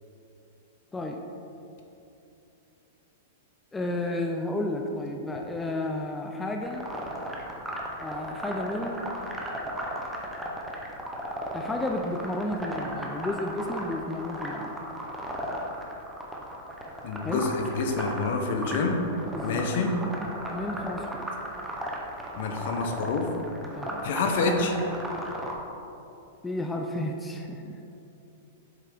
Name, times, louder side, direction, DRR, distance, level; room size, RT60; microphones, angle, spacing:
voice 1, 3.7-6.9 8.0-9.0 11.5-14.7 17.2-17.4 19.3-19.7 20.5-21.3 23.7-24.0 26.4-27.8, left 1 dB, 10° left, 2 dB, 0.4 m, -32 dB
sound 1, 6.7-25.5, equal, 5° right, 0.8 m, -36 dB
voice 2, 17.0-19.0 19.4-20.0 22.4-23.3 24.0-24.7, left 4 dB, 60° left, 3 dB, 0.8 m, -27 dB
7.6 x 3.4 x 4.9 m, 2.8 s
hypercardioid pair, 145°, 0 cm